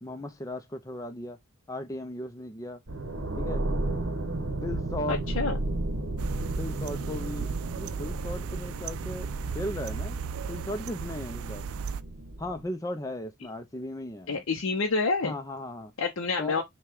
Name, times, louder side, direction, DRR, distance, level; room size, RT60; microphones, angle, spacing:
voice 1, 0.0-1.4 1.7-2.8 3.4-3.6 4.6-5.2 6.6-9.3 9.5-10.2 10.5-11.7 12.4-14.4 15.2-15.9 16.4-16.6, left 1 dB, 15° left, 0.5 m, -36 dB
sound 1, 2.9-12.6, right 2 dB, 65° right, 1.1 m, -34 dB
voice 2, 5.1-5.6 14.3-15.3 16.0-16.6, left 4 dB, 75° left, 0.7 m, -28 dB
sound 2, 6.2-12.0, right 6 dB, 80° right, 0.4 m, -36 dB
5.7 x 2.3 x 3.4 m
head